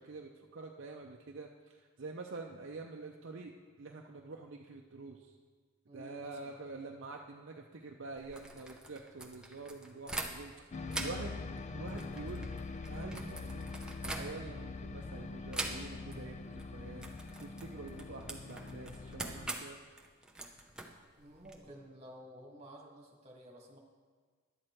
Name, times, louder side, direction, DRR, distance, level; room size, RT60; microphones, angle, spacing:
voice 1, 0.0-5.4 5.9-11.3 11.7-12.5 12.9-13.7 14.0-19.8, right 3 dB, 55° right, 1 dB, 0.6 m, -47 dB
voice 2, 5.9-6.6 21.2-23.8, equal, 30° right, 0 dB, 1.5 m, -52 dB
sound 1, 8.2-10.6 10.9-14.7 15.5-16.2 16.4-16.7 17.0-21.6, right 2 dB, 5° right, 0.6 m, -43 dB
sound 2, 10.7-19.5, left 3 dB, 30° left, 0.4 m, -43 dB
11.0 x 7.9 x 4.4 m, 1.5 s
head